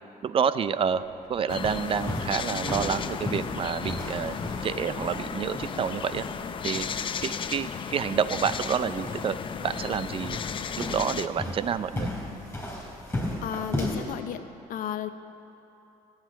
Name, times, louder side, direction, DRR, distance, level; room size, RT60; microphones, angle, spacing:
voice 1, 0.2-1.0 1.3-4.4 4.6-6.2 6.6-6.9 7.2-9.3 9.6-10.4 10.8-12.1, right 7 dB, 35° right, 14 dB, 0.5 m, -28 dB
sound 1, 0.9-9.6, right 2 dB, 55° right, 3.5 m, -53 dB
sound 2, 1.5-11.3, left 7 dB, 35° left, 0.6 m, -34 dB
sound 3, 1.6-14.1, left 1 dB, 10° left, 3.6 m, -36 dB
voice 2, 13.4-15.1, left 9 dB, 65° left, 10 dB, 0.7 m, -33 dB
14.0 x 8.2 x 10.0 m, 3.0 s
cardioid pair, 110°, 15 cm